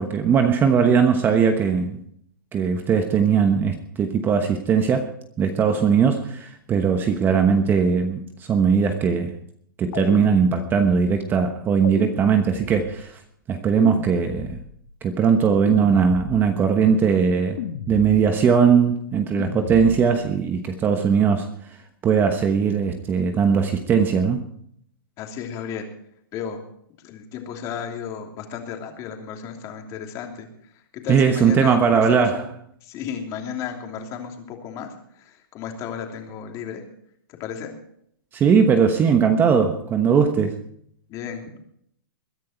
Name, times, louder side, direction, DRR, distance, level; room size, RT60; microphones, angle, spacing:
voice 1, 0.0-2.0 2.5-5.1 5.4-9.3 9.8-13.2 13.5-14.6 15.0-17.6 17.9-21.5 22.0-24.4 31.1-32.4 38.3-40.6, right 6 dB, 15° right, 6 dB, 1.1 m, -19 dB
sound 1, 9.9-11.1 11.8-13.0 13.8-14.9 15.7-16.7 17.6-18.5 19.4-20.3, left 9 dB, 55° left, 1.8 m, -34 dB
voice 2, 25.2-25.9 26.3-26.6 27.0-32.4 32.8-36.8 37.4-37.7 41.1-41.6, left 7 dB, 30° left, 3 dB, 3.0 m, -34 dB
21.5 x 10.5 x 4.5 m, 0.67 s
hypercardioid pair, 150°, 12 cm